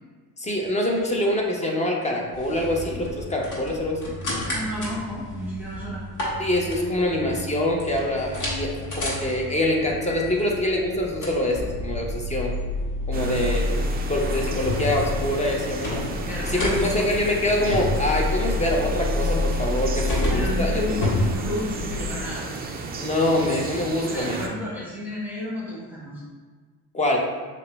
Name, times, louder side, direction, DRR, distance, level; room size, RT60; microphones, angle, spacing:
voice 1, 0.4-4.1 6.4-12.5 13.1-16.1 16.4-20.8 23.0-24.4 26.9-27.2, left 1 dB, 15° left, 0 dB, 0.7 m, -25 dB
sound 1, 2.3-22.2, left 2 dB, 45° left, 1.4 m, -29 dB
voice 2, 4.5-6.0 13.1-14.3 16.3-17.1 20.3-22.4 24.0-26.2, equal, 5° right, -7 dB, 1.1 m, -32 dB
sound 2, 13.1-24.5, right 3 dB, 25° right, 0.4 m, -34 dB
6.4 x 2.2 x 2.2 m, 1.4 s
supercardioid pair, 80°, 42 cm